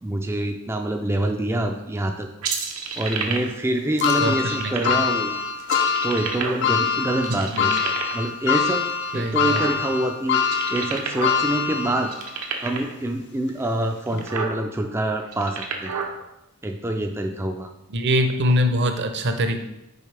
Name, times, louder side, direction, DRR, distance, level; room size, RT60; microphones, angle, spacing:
voice 1, 0.0-2.3 3.0-5.3 6.0-8.9 9.1-12.1 12.6-16.1 16.6-17.7, right 1 dB, 10° right, 3 dB, 0.3 m, -26 dB
sound 1, 2.4-3.6 4.0-5.1 5.6-6.9 7.2-8.3 8.8-10.1 10.4-11.4 11.6-11.7 12.0-12.9 13.6-13.7 14.1-14.5 15.2-16.1, right 5 dB, 90° right, 0.9 m, -29 dB
sound 2, 4.0-12.4 12.9-13.0 14.1-14.2, left 6 dB, 50° left, 0.5 m, -24 dB
voice 2, 4.2-4.7 7.5-7.7 9.1-9.6 17.9-19.6, equal, 50° right, 7 dB, 0.6 m, -23 dB
6.4 x 4.8 x 3.3 m, 0.88 s
head